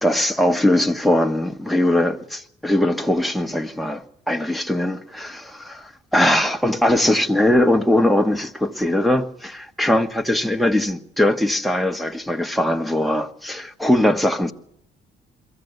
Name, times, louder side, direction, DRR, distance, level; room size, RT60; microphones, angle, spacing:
voice 1, 0.0-14.5, left 1 dB, ahead, 1.2 m, -20 dB
22.5 x 14.5 x 8.0 m
cardioid pair, 90°, 20 cm